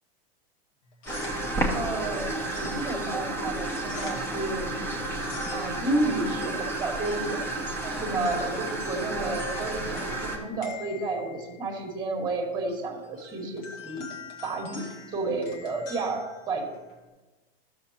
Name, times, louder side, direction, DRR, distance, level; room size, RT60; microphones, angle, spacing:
sound 1, 0.8-17.1, left 5 dB, 65° left, 2.0 m, -46 dB
sound 2, 1.1-10.4, right 2 dB, 10° left, 1.2 m, -31 dB
voice 1, 1.7-4.7 5.5-7.4 7.8-14.1 14.4-16.7, right 2 dB, 15° right, 1 dB, 1.7 m, -31 dB
12.5 x 6.9 x 2.9 m, 1.2 s
supercardioid pair, 145°, 30 cm